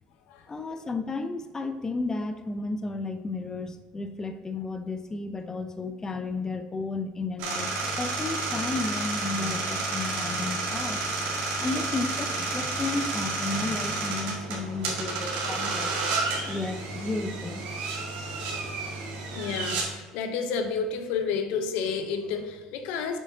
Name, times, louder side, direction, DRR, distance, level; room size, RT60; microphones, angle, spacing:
voice 1, 0.5-7.7 8.0-15.9 16.5-17.6, left 3 dB, 25° left, 8 dB, 0.5 m, -33 dB
sound 1, 7.4-19.8, right 3 dB, 75° right, 1.8 m, -31 dB
voice 2, 18.1-18.7 19.0-19.1 19.3-23.2, left 5 dB, 75° left, 6 dB, 0.7 m, -31 dB
6.4 x 6.4 x 2.8 m, 1.3 s
supercardioid pair, 80°, 3 cm